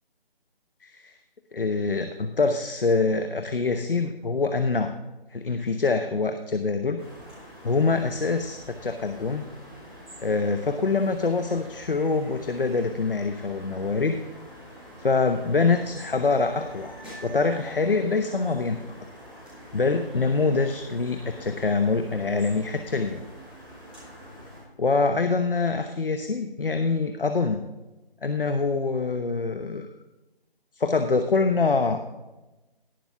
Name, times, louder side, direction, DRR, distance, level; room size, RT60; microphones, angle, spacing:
voice 1, 0.8-1.1 1.5-4.9 5.3-7.0 7.6-9.4 10.2-14.2 15.0-16.9 17.2-18.8 19.7-23.2 24.8-27.6 28.2-29.9 30.7-32.0, left 4 dB, 65° left, 8 dB, 1.0 m, -25 dB
sound 1, 7.0-24.6, equal, 5° right, 1.7 m, -45 dB
18.0 x 6.2 x 3.5 m, 1.1 s
figure-of-eight pair, 165°, 30 cm